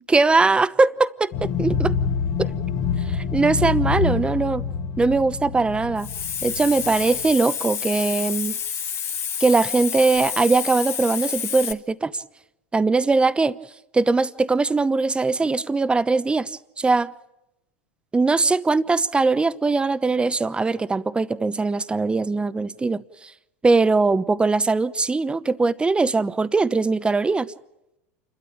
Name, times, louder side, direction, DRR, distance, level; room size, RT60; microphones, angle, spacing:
voice 1, 0.0-2.0 2.4-2.5 3.1-4.6 5.0-6.1 6.4-8.6 9.4-12.2 12.7-13.6 13.9-17.1 18.1-23.3 23.6-27.5, right 3 dB, 15° right, 16 dB, 0.9 m, -21 dB
sound 1, 1.3-7.3, left 6 dB, 50° left, 1.6 m, -26 dB
Hiss, 6.0-11.7, left 7 dB, 35° left, 1.6 m, -29 dB
29.0 x 13.0 x 8.6 m, 0.89 s
hypercardioid pair, 85°, 8 cm